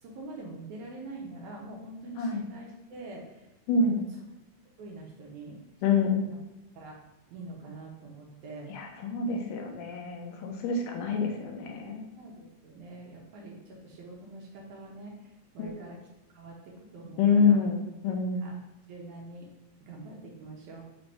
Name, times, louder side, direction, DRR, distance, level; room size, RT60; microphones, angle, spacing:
voice 1, 0.0-3.9 4.8-5.6 6.8-7.0 7.3-8.8 12.1-16.0 16.3-17.6 18.4-18.5 18.9-19.5 19.8-20.8, right 2 dB, 75° right, -1 dB, 2.0 m, -44 dB
voice 2, 3.7-4.0 5.8-6.3 8.7-12.0 15.6-15.9 17.2-18.5, left 4 dB, 85° left, 2 dB, 2.2 m, -27 dB
5.7 x 2.6 x 3.3 m, 1.0 s
omnidirectional pair, 3.7 m